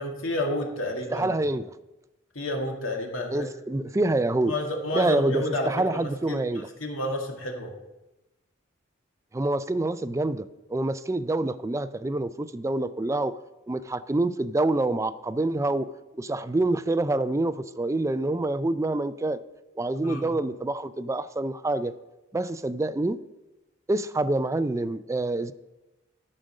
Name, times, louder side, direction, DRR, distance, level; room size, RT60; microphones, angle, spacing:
voice 1, 0.0-1.4 2.4-3.5 4.5-7.7 20.0-20.3, left 1 dB, 75° left, 2.0 m, -30 dB
voice 2, 1.1-1.7 3.3-4.5 4.9-6.7 9.3-10.4 10.7-13.4 13.7-19.4 19.8-21.9 22.3-23.2 23.9-25.5, right 2 dB, 15° right, 0.3 m, -26 dB
13.0 x 5.1 x 6.4 m
head